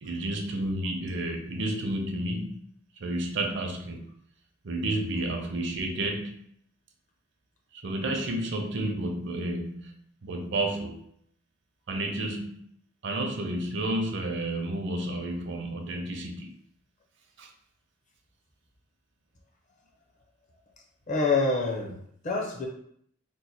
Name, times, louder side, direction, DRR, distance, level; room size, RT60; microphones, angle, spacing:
voice 1, 0.0-2.6 3.0-4.0 4.6-6.3 7.7-9.9 10.2-11.0 11.9-12.6 13.0-16.5 17.4-17.5, right 1 dB, 60° right, 2 dB, 0.5 m, -31 dB
voice 2, 21.1-22.7, left 3 dB, 40° left, 0 dB, 0.7 m, -27 dB
3.1 x 2.1 x 4.1 m, 0.69 s
head